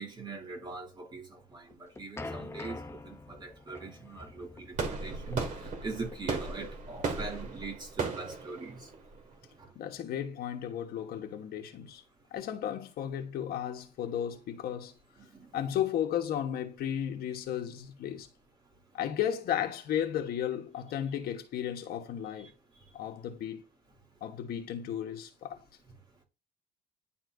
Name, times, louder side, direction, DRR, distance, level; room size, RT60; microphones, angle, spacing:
voice 1, 0.0-5.4 5.8-8.9 9.6-9.7 15.2-15.5, right 3 dB, 25° right, 2.7 m, -42 dB
sound 1, 1.5-8.4, left 2 dB, 15° left, 0.7 m, -46 dB
sound 2, 4.7-9.7, right 4 dB, 50° right, 1.9 m, -36 dB
voice 2, 9.7-12.0 12.3-14.9 15.5-18.3 18.9-22.5 22.9-23.6 24.2-25.6, left 10 dB, 65° left, 1.4 m, -34 dB
10.5 x 4.3 x 2.7 m
cardioid pair, 110°, 17 cm